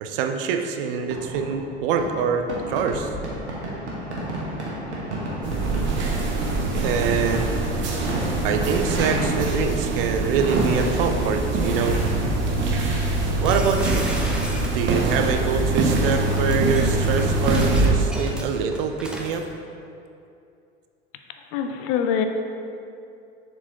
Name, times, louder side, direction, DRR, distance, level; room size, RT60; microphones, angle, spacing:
voice 1, 0.0-3.1 6.8-7.6 8.4-12.0 13.4-14.1 14.7-19.4, right 6 dB, 55° right, 6 dB, 0.5 m, -25 dB
Fireworks, 1.0-14.6, right 1 dB, 85° right, 1.2 m, -32 dB
sound 1, 5.4-17.9, right 2 dB, 35° right, 0.9 m, -24 dB
sound 2, 13.4-15.1 16.1-19.4, equal, 5° right, 0.6 m, -32 dB
voice 2, 21.5-22.3, left 8 dB, 40° left, 6 dB, 0.5 m, -24 dB
7.0 x 4.5 x 3.0 m, 2.6 s
figure-of-eight pair, 75°, 33 cm